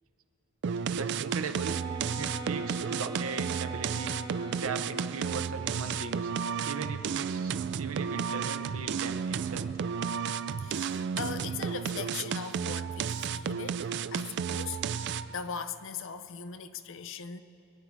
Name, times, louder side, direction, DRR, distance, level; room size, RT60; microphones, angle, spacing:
sound 1, 0.6-15.4, right 7 dB, 50° right, 0.3 m, -33 dB
voice 1, 0.9-1.8 2.1-4.2 4.5-9.7, right 4 dB, 70° right, 0.8 m, -38 dB
sound 2, 1.6-5.5, right 1 dB, 20° right, 0.9 m, -43 dB
voice 2, 10.6-17.4, left 6 dB, 60° left, 0.6 m, -40 dB
23.0 x 9.8 x 4.7 m
head